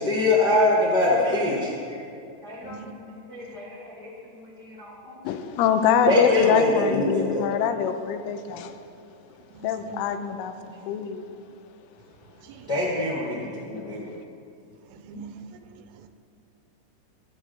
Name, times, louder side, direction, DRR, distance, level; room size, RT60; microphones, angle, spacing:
voice 1, 0.0-1.9 2.4-2.8 3.3-5.5 6.0-7.5 12.7-14.1, left 2 dB, 70° left, -6 dB, 0.9 m, -24 dB
voice 2, 2.6-2.9 3.5-3.6 9.5-10.1 12.4-12.7 14.9-16.1, right 5 dB, 85° right, 9 dB, 3.4 m, -43 dB
voice 3, 5.2-8.7 9.6-11.3, left 8 dB, 85° left, 8 dB, 3.3 m, -25 dB
23.0 x 8.4 x 5.8 m, 2.6 s
omnidirectional pair, 5.7 m